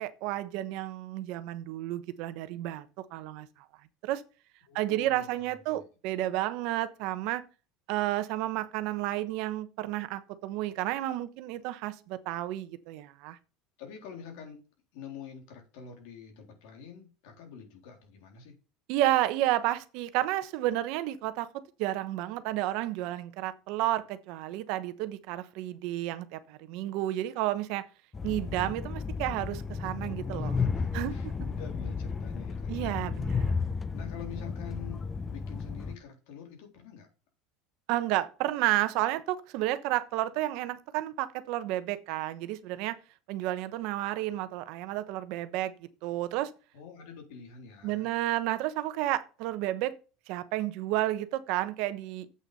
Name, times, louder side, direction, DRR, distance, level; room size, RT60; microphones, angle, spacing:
voice 1, 0.0-3.5 4.0-4.2 4.7-7.4 7.9-13.4 18.9-21.5 21.8-27.8 28.2-30.5 30.9-31.1 32.7-33.5 37.9-43.0 43.3-45.7 46.0-46.5 47.8-50.0 50.3-52.3, right 15 dB, 65° right, 1.0 m, -31 dB
voice 2, 4.7-5.3 5.7-5.9 13.8-14.6 14.9-18.6 30.3-32.9 33.9-37.1 46.7-48.1, left 7 dB, 75° left, 3.5 m, -46 dB
Train, 28.1-36.0, left 5 dB, 20° left, 0.8 m, -33 dB
8.1 x 6.5 x 5.4 m
supercardioid pair, 120°, 0 cm